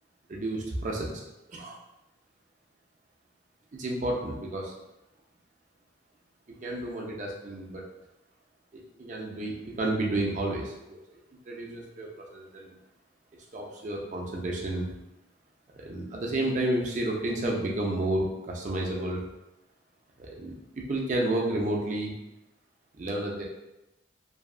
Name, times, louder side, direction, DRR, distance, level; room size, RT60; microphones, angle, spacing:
voice 1, 0.3-1.1 1.5-1.8 3.7-4.7 6.5-7.8 8.7-11.0 11.5-12.8 13.5-14.9 15.7-19.2 20.2-22.1 23.0-23.4, right 1 dB, 40° right, -2 dB, 0.4 m, -31 dB
2.6 x 2.3 x 2.3 m, 0.95 s
head